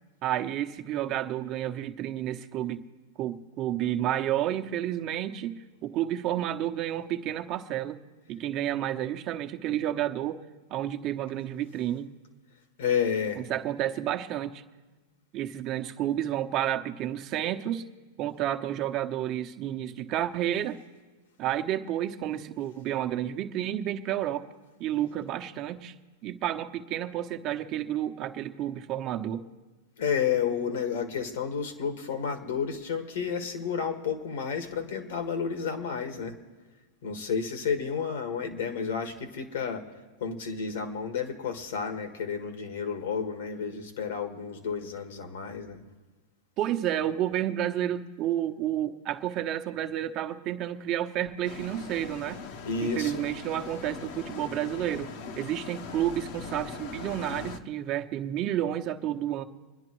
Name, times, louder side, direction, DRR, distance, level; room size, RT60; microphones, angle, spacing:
voice 1, 0.2-2.8 3.2-8.0 8.3-10.4 10.7-12.1 13.4-14.6 15.3-17.8 18.2-20.8 21.4-24.5 24.8-25.9 26.2-29.4 46.6-52.4 52.8-59.4, right 12 dB, 45° right, 6 dB, 0.9 m, -30 dB
voice 2, 12.8-13.4 30.0-36.4 37.0-39.9 40.2-45.8 52.6-53.2, left 6 dB, 75° left, 6 dB, 1.8 m, -31 dB
sound 1, 51.4-57.6, left 5 dB, 60° left, 1.0 m, -41 dB
26.0 x 10.5 x 3.1 m, 1.3 s
hypercardioid pair, 110°, 0 cm